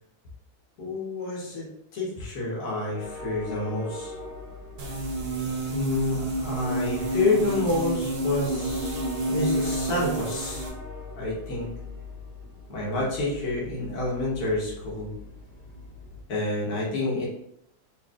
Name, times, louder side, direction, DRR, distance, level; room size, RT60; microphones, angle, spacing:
voice 1, 0.8-4.2 5.7-10.7 11.2-11.8 12.7-15.1 16.3-17.3, left 2 dB, 70° left, -5 dB, 1.7 m, -28 dB
sound 1, 2.9-16.2, left 1 dB, 35° left, 1.1 m, -41 dB
sound 2, 4.8-10.7, right 1 dB, 50° right, 0.8 m, -29 dB
4.2 x 3.2 x 2.4 m, 0.75 s
omnidirectional pair, 1.7 m